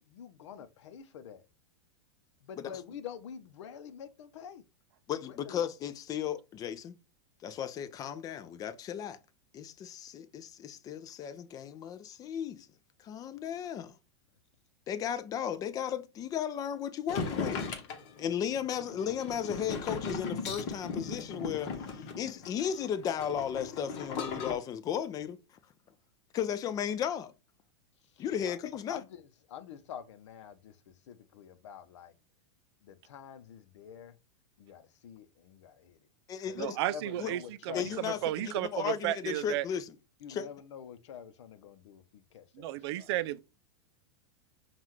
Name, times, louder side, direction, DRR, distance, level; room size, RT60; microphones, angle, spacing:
voice 1, 0.0-1.5 2.4-4.6 5.2-5.6 18.0-18.1 28.0-28.6 28.9-32.1 32.8-34.2 34.6-36.1 36.4-38.7 40.2-43.2, left 8 dB, 75° left, 0.7 m, -47 dB
voice 2, 5.1-6.9 7.4-9.2 9.5-12.7 13.0-13.9 14.9-17.7 18.2-25.4 26.3-27.3 28.2-29.0 36.3-36.8 37.2-37.3 37.7-39.9 40.3-40.5, left 9 dB, 25° left, 0.4 m, -35 dB
sound 1, 17.1-24.5, left 5 dB, 45° left, 1.1 m, -38 dB
voice 3, 36.6-37.4 37.7-39.7 42.6-43.4, right 14 dB, 60° right, 0.4 m, -33 dB
5.5 x 2.4 x 3.0 m
supercardioid pair, 135°, 15 cm